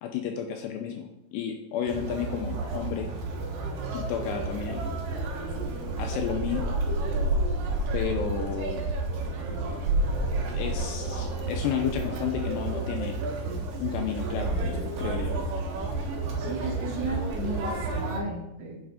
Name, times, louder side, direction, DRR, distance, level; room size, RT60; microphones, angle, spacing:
voice 1, 0.0-3.1 3.9-4.9 6.0-6.6 7.9-8.9 10.5-13.1 13.8-15.4, left 8 dB, 85° left, 4 dB, 2.4 m, -32 dB
Conversation, 1.9-18.2, right 2 dB, 60° right, 2.5 m, -30 dB
voice 2, 16.4-18.8, right 2 dB, 40° right, -6 dB, 1.6 m, -34 dB
9.2 x 7.2 x 4.9 m, 0.93 s
omnidirectional pair, 5.7 m